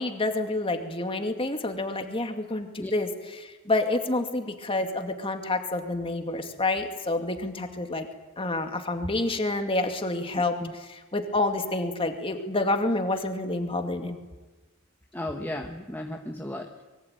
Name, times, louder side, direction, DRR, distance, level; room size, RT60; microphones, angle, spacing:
voice 1, 0.0-8.1 8.4-14.2, left 2 dB, 25° left, 5 dB, 2.5 m, -28 dB
voice 2, 15.1-16.8, left 1 dB, 10° left, 2 dB, 1.3 m, -35 dB
24.5 x 23.0 x 9.2 m, 1.2 s
head